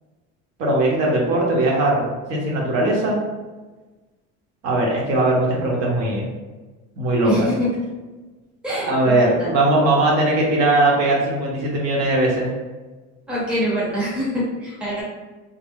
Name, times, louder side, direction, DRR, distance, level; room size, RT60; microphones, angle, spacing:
voice 1, 0.6-2.0 2.3-3.2 4.6-6.3 7.0-7.5 8.7-12.5, right 2 dB, 55° right, -2 dB, 0.8 m, -19 dB
voice 2, 7.2-7.7 8.6-9.3 13.3-15.0, equal, 5° right, -8 dB, 0.7 m, -24 dB
3.5 x 2.0 x 3.5 m, 1.2 s
cardioid pair, 170°, 30 cm